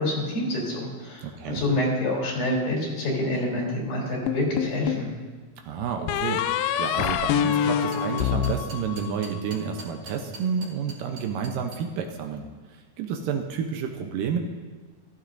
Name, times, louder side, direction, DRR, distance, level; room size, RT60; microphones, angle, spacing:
voice 1, 0.0-5.1, left 1 dB, 70° left, -4 dB, 5.0 m, -27 dB
voice 2, 1.2-1.6 5.6-12.4 12.7-14.4, right 6 dB, 75° right, 4 dB, 2.2 m, -30 dB
sound 1, 4.3-5.1 6.1-9.4, left 9 dB, 85° left, 2.4 m, -26 dB
sound 2, 7.6-11.8, right 3 dB, 50° right, 2.6 m, -43 dB
15.0 x 14.5 x 2.6 m, 1.4 s
omnidirectional pair, 4.3 m